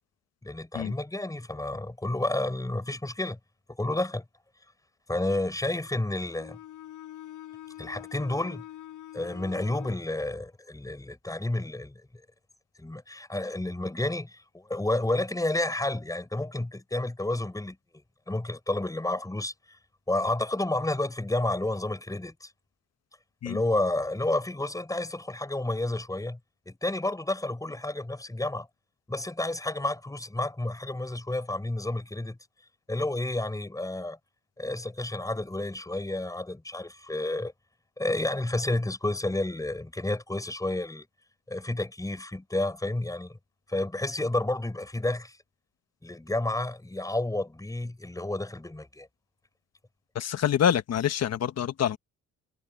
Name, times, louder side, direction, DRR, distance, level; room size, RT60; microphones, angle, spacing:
voice 1, 0.4-3.4 3.8-4.2 5.1-6.6 7.8-8.6 9.1-11.9 12.8-17.8 18.3-19.5 20.1-22.5 23.4-26.4 26.6-28.7 29.1-32.4 32.9-34.2 34.6-37.5 38.0-41.1 41.5-43.4 43.7-45.4 46.0-49.1, left 2 dB, 10° left, 4.9 m, -30 dB
Bowed string instrument, 6.3-10.1, left 13 dB, 80° left, 7.0 m, -45 dB
voice 2, 50.1-52.0, left 9 dB, 60° left, 1.4 m, -26 dB
cardioid pair, 90°, 30 cm